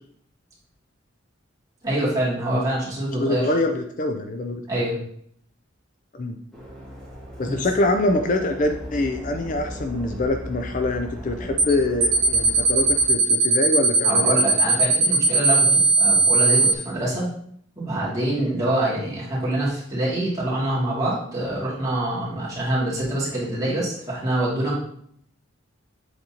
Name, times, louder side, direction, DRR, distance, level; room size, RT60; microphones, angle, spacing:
voice 1, 1.8-3.5 4.7-5.0 7.4-7.5 14.0-17.3 17.8-24.8, right 1 dB, 20° right, -8 dB, 2.4 m, -25 dB
voice 2, 3.1-4.6 6.1-6.4 7.4-14.4, left 2 dB, 40° left, 5 dB, 0.4 m, -24 dB
sound 1, 6.5-13.1, equal, 5° left, 2.3 m, -37 dB
sound 2, 11.6-11.7 12.0-16.7, right 4 dB, 45° right, 0.9 m, -18 dB
7.8 x 4.2 x 2.9 m, 0.66 s
head